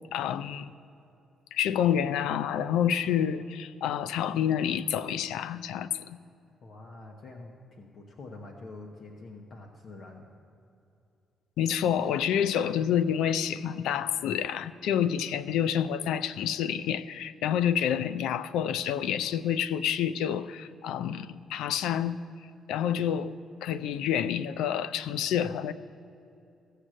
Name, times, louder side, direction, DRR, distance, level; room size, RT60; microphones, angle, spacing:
voice 1, 0.1-0.7 1.5-6.2 11.6-22.2 22.7-23.3 23.6-25.7, left 9 dB, 90° left, 15 dB, 0.4 m, -28 dB
voice 2, 6.6-10.2, left 2 dB, 60° left, 3 dB, 1.1 m, -46 dB
15.5 x 6.7 x 7.5 m, 2.6 s
cardioid pair, 90°, 0 cm